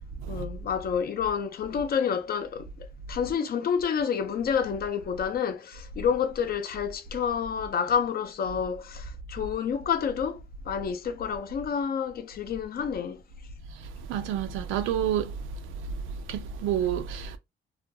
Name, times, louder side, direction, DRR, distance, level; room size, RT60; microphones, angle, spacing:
voice 1, 0.3-13.2, left 7 dB, 50° left, 0.5 m, -29 dB
voice 2, 14.1-15.4 16.3-17.4, right 10 dB, 85° right, 0.4 m, -28 dB
2.4 x 2.2 x 2.6 m
cardioid pair, 90°, 20 cm